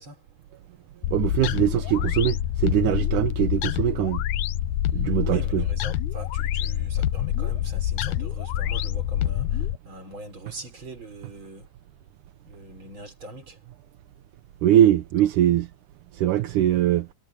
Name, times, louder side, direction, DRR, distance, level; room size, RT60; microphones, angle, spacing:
voice 1, 0.0-1.0 5.2-11.7 12.4-13.7 15.2-15.3, right 2 dB, 30° right, 6.1 m, -43 dB
sound 1, 1.0-9.8, left 12 dB, 80° left, 1.7 m, -26 dB
voice 2, 1.1-4.2 4.9-5.6 14.6-15.7 16.1-17.1, right 12 dB, 70° right, 2.1 m, -22 dB
omnidirectional pair, 4.4 m